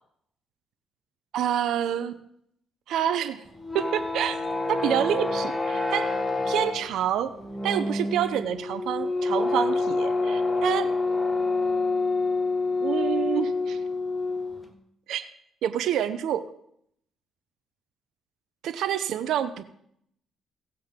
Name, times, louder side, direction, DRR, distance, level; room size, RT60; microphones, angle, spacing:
voice 1, 1.3-2.1 2.9-3.4 3.7-4.4 4.7-6.1 6.5-7.3 7.6-10.9 12.8-13.8 15.1-15.2 15.6-16.4 18.6-19.7, right 10 dB, 80° right, 11 dB, 0.7 m, -27 dB
sound 1, 3.5-14.7, left 3 dB, 10° left, 1.6 m, -27 dB
17.5 x 7.7 x 3.7 m, 0.72 s
cardioid pair, 90°, 0 cm